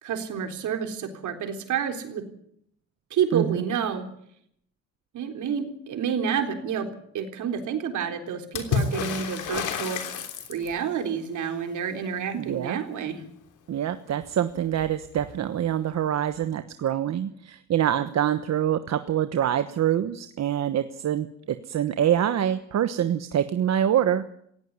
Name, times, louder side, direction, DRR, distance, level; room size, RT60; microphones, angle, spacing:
voice 1, 0.0-2.2 3.1-4.1 5.1-6.9 7.1-10.0 10.5-13.2, right 7 dB, 75° right, 5 dB, 3.7 m, -29 dB
Water / Splash splatter, 8.5-10.9 14.2-14.3 14.6-15.3 16.4-16.5, left 5 dB, 85° left, 3.4 m, -30 dB
voice 2, 12.3-12.8 13.7-24.2, right 10 dB, 60° right, 10 dB, 1.2 m, -25 dB
17.5 x 16.5 x 9.6 m, 0.70 s
cardioid pair, 90°, 30 cm